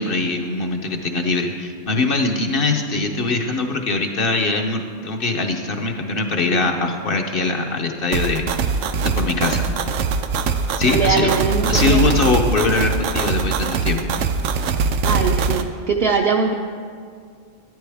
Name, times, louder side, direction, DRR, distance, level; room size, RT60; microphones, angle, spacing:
voice 1, 0.0-9.7 10.8-11.3 11.7-14.1, left 3 dB, 55° left, 3 dB, 0.9 m, -22 dB
sound 1, 8.1-15.6, right 5 dB, 80° right, 0.9 m, -22 dB
voice 2, 10.8-12.1 15.0-16.5, right 5 dB, 60° right, 0 dB, 0.8 m, -21 dB
12.5 x 10.5 x 3.4 m, 2.1 s
omnidirectional pair, 1.2 m